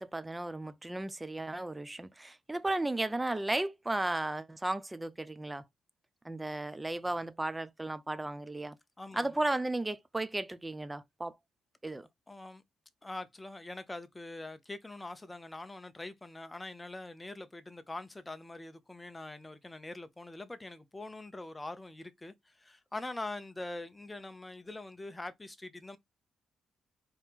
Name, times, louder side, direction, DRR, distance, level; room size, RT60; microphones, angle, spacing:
voice 1, 0.0-5.6 6.2-8.8 9.1-11.3 11.8-12.1, right 2 dB, 15° right, 0.5 m, -34 dB
voice 2, 9.0-9.4 12.3-12.6 13.0-26.0, left 2 dB, 15° left, 0.8 m, -43 dB
4.4 x 3.0 x 3.6 m
cardioid pair, 90°, 0 cm